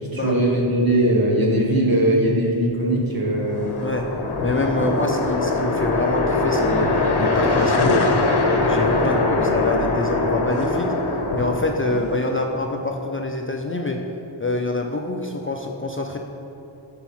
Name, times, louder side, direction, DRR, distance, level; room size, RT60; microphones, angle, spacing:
voice 1, 0.0-3.7 4.7-4.9 9.0-9.5 11.9-12.0, right 1 dB, 45° right, -2 dB, 1.8 m, -21 dB
sound 1, 3.3-12.4, left 2 dB, 50° left, 1.0 m, -22 dB
voice 2, 4.4-8.1 8.7-14.0 14.4-16.2, left 2 dB, 25° left, 2 dB, 0.6 m, -26 dB
11.5 x 4.8 x 4.4 m, 3.0 s
wide cardioid pair, 70°, 49 cm